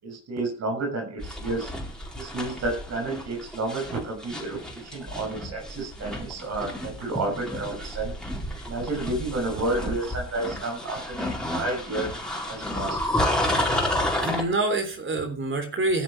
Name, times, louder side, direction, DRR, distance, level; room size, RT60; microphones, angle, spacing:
voice 1, 0.0-1.7 2.1-8.1 8.6-12.1 12.5-13.1, right 2 dB, 60° right, 1 dB, 6.5 m, -31 dB
sound 1, 1.2-14.4, left 1 dB, 5° left, 4.6 m, -31 dB
voice 2, 14.2-16.0, right 2 dB, 40° right, 6 dB, 3.3 m, -27 dB
14.0 x 6.5 x 7.4 m, 0.40 s
cardioid pair, 90°, 30 cm